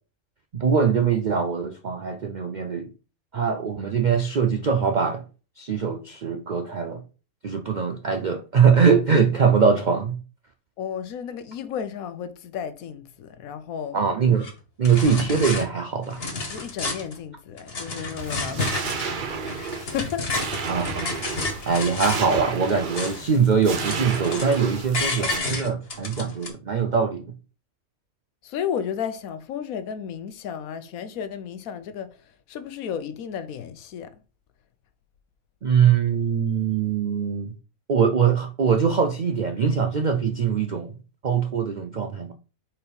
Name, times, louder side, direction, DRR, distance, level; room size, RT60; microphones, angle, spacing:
voice 1, 0.5-2.9 3.3-5.2 5.6-7.0 7.4-10.2 13.9-14.5 14.8-16.2 20.7-21.1 21.7-27.2 35.6-37.5 37.9-40.9 41.2-42.3, right 6 dB, 65° right, 0.4 m, -22 dB
voice 2, 10.8-14.0 16.5-19.3 19.7-20.3 28.4-32.2 32.5-34.2, left 8 dB, 80° left, 1.1 m, -33 dB
sound 1, 14.4-14.5 14.8-15.6 16.0-17.2 17.6-19.1 19.4-22.3 22.6-23.4 23.6-24.6 24.9-26.5, left 3 dB, 45° left, 1.6 m, -30 dB
sound 2, 18.2-25.4, right 5 dB, 45° right, 0.8 m, -32 dB
4.4 x 4.3 x 5.2 m
omnidirectional pair, 1.5 m